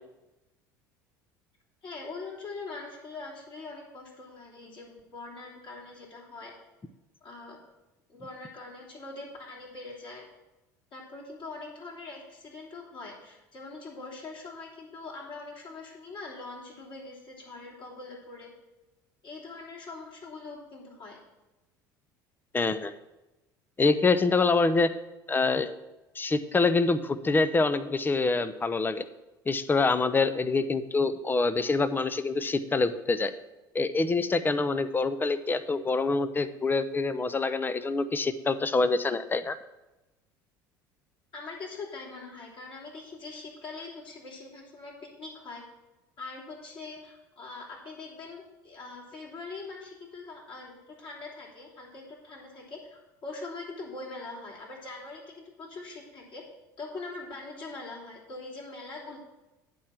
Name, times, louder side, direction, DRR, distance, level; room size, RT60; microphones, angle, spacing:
voice 1, 1.8-6.5 7.2-7.6 8.1-10.3 10.9-18.5 19.2-21.2 41.3-45.6 46.2-52.8 53.2-56.4 56.8-59.2, left 3 dB, 50° left, -4 dB, 3.1 m, -42 dB
voice 2, 22.5-22.9 23.8-24.9 25.3-25.7 26.2-29.0 29.5-33.3 33.7-39.6, left 3 dB, 20° left, 12 dB, 0.6 m, -26 dB
9.1 x 4.3 x 7.4 m, 1.0 s
hypercardioid pair, 70°, 11 cm